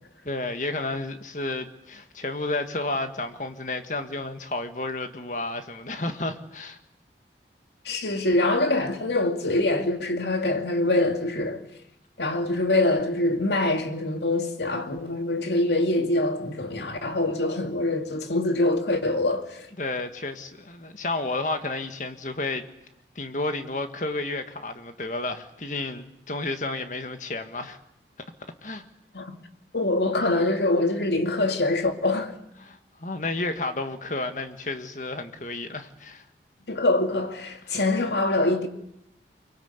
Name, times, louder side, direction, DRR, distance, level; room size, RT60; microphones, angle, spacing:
voice 1, 0.3-6.8 19.8-22.7 23.2-27.8 28.2-28.3 28.6-28.8 32.6-36.3, left 2 dB, 45° left, 1.8 m, -31 dB
voice 2, 7.9-11.6 12.2-19.6 29.1-29.3 29.7-32.3 36.7-38.7, left 2 dB, 75° left, 2.4 m, -24 dB
24.0 x 22.5 x 8.2 m
head